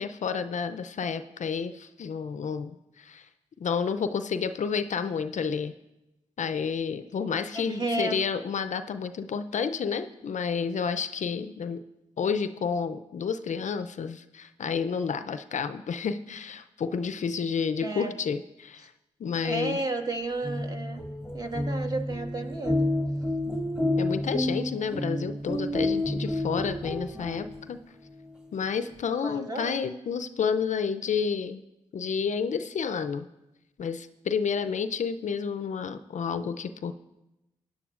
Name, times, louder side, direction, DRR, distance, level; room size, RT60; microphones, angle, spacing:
voice 1, 0.0-3.3 3.6-5.7 6.4-11.8 12.2-18.9 19.2-19.8 24.0-27.8 28.5-31.6 31.9-33.3 33.8-36.9, left 6 dB, 60° left, 11 dB, 0.5 m, -30 dB
voice 2, 7.5-8.2 17.8-18.1 19.4-21.0 21.3-22.9 29.2-29.8, right 2 dB, 30° right, 3 dB, 1.6 m, -32 dB
sound 1, 20.3-27.9, left 1 dB, 5° right, 2.2 m, -30 dB
16.5 x 10.0 x 2.5 m, 0.96 s
supercardioid pair, 40°, 14 cm